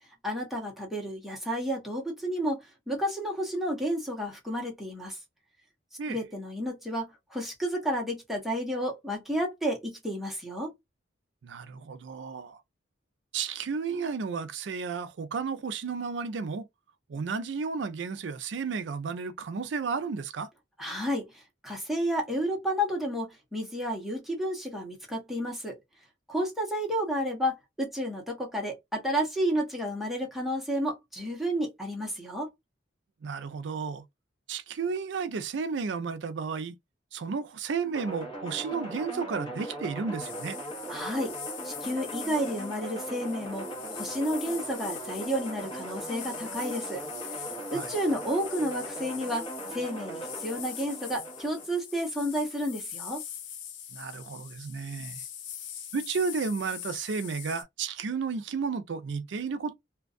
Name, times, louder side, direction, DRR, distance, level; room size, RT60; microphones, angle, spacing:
voice 1, 0.2-5.2 6.1-10.7 20.8-25.7 26.3-32.5 40.9-41.3 41.6-43.7 43.9-47.0 47.4-47.5 47.7-53.2, equal, ahead, 0.9 m, -31 dB
voice 2, 11.4-12.6 13.3-16.7 17.1-20.5 33.2-34.0 34.5-36.7 37.1-40.6 47.7-47.9 53.9-55.2 55.9-59.7, right 5 dB, 70° right, 0.4 m, -33 dB
sound 1, 37.9-51.7, right 1 dB, 30° left, 1.1 m, -39 dB
sound 2, 40.2-57.6, left 9 dB, 75° left, 0.6 m, -42 dB
2.5 x 2.2 x 2.4 m
head